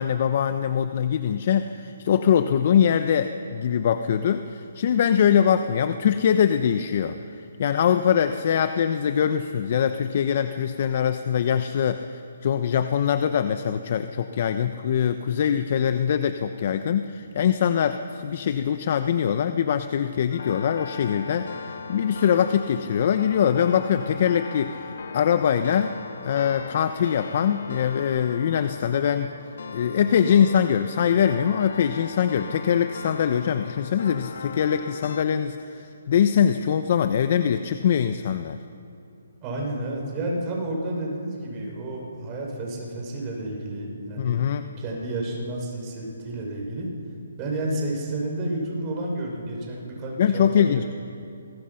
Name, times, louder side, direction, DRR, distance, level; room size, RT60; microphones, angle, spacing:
voice 1, 0.0-26.0 26.2-29.3 29.7-38.6 44.2-44.7 50.2-50.8, left 8 dB, 45° left, 9 dB, 0.9 m, -23 dB
sound 1, 20.3-35.2, left 5 dB, 60° left, 1.9 m, -39 dB
voice 2, 39.4-44.4 44.8-46.9 47.4-50.9, right 1 dB, 25° right, -1 dB, 6.4 m, -31 dB
27.5 x 23.0 x 5.8 m, 2.7 s
hypercardioid pair, 160°, 0 cm